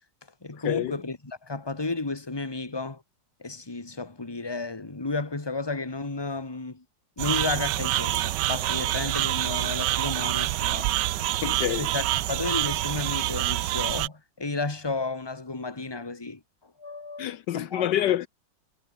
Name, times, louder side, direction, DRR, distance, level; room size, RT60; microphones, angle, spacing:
voice 1, 0.4-3.0 3.4-6.8 7.2-10.9 11.8-16.4 16.8-18.1, left 3 dB, 15° left, 1.8 m, -33 dB
sound 1, 7.2-14.1, right 16 dB, 75° right, 1.2 m, -27 dB
voice 2, 11.4-11.9 17.2-18.3, left 12 dB, 75° left, 1.3 m, -27 dB
omnidirectional pair, 1.9 m